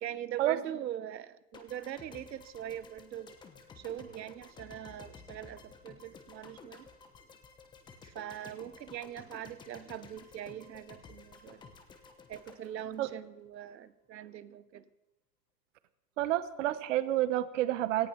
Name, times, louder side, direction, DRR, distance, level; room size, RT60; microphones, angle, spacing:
voice 1, 0.0-3.4 3.8-6.9 8.0-11.6 12.3-14.9, right 11 dB, 90° right, 15 dB, 1.0 m, -42 dB
sound 1, 1.5-13.7, left 5 dB, 10° left, 1.0 m, -54 dB
voice 2, 16.2-18.1, right 14 dB, 50° right, 14 dB, 1.0 m, -29 dB
18.0 x 13.5 x 5.7 m, 0.96 s
hypercardioid pair, 155°, 49 cm